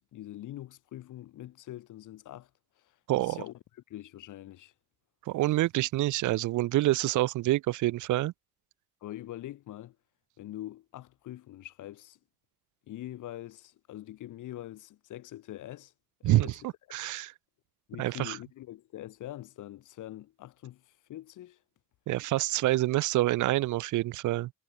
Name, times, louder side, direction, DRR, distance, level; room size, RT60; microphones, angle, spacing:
voice 1, 0.0-2.5 2.8-3.6 3.9-4.7 9.0-10.0 10.4-12.2 12.9-15.9 16.2-16.6 17.9-21.6, left 14 dB, 80° left, 7.2 m, -44 dB
voice 2, 5.3-8.3 16.2-16.5 16.9-17.3 18.0-18.4 22.1-24.5, right 16 dB, 75° right, 0.7 m, -27 dB
cardioid pair, 90°, 30 cm